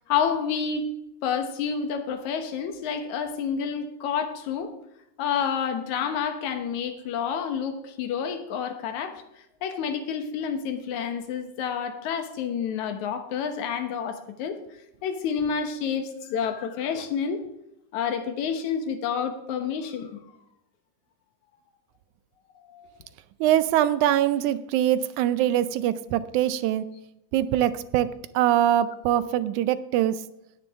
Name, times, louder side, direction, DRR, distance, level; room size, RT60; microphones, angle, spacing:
voice 1, 0.1-0.9 1.2-4.7 5.2-9.2 9.6-14.6 15.0-17.4 17.9-20.2 22.7-22.9, left 7 dB, 80° left, 7 dB, 2.4 m, -29 dB
voice 2, 23.4-26.9 27.3-28.1 28.3-30.2, right 12 dB, 90° right, 14 dB, 2.1 m, -23 dB
17.5 x 10.0 x 3.5 m, 0.84 s
omnidirectional pair, 3.3 m